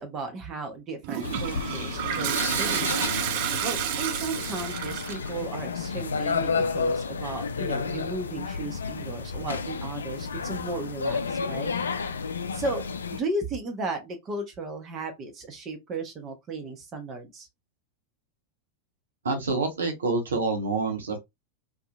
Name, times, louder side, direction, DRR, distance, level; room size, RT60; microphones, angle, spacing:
voice 1, 0.0-11.7 12.5-12.8 13.1-17.5, right 3 dB, 30° right, 0.8 m, -35 dB
Toilet flush, 1.0-5.3, right 10 dB, 50° right, 0.3 m, -30 dB
sound 1, 1.2-13.2, left 5 dB, 70° left, 0.3 m, -31 dB
voice 2, 19.2-21.2, right 3 dB, 70° right, 0.9 m, -27 dB
2.7 x 2.3 x 2.3 m
figure-of-eight pair, 90°, 0 cm